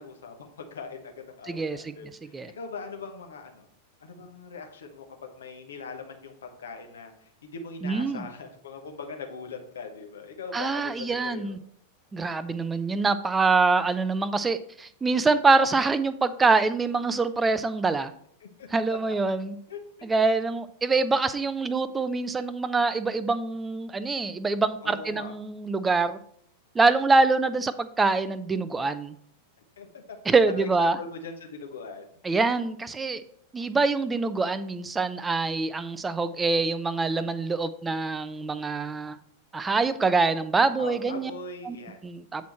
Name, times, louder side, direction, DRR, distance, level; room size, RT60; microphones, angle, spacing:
voice 1, 0.0-3.7 4.0-7.1 7.4-11.5 18.4-19.1 19.7-20.1 24.8-25.3 29.8-30.2 30.6-32.1 38.7-39.0 40.8-42.0, left 4 dB, 65° left, 4 dB, 1.1 m, -41 dB
voice 2, 1.5-1.9 2.3-2.5 7.8-8.3 10.5-11.6 12.1-18.1 18.7-19.5 20.0-26.2 26.7-29.2 30.3-31.0 32.2-33.2 33.5-39.2 39.5-41.3 41.6-41.8 42.0-42.5, right 3 dB, 15° right, 13 dB, 0.4 m, -25 dB
8.2 x 4.3 x 4.4 m, 0.66 s
figure-of-eight pair, 90°, 0 cm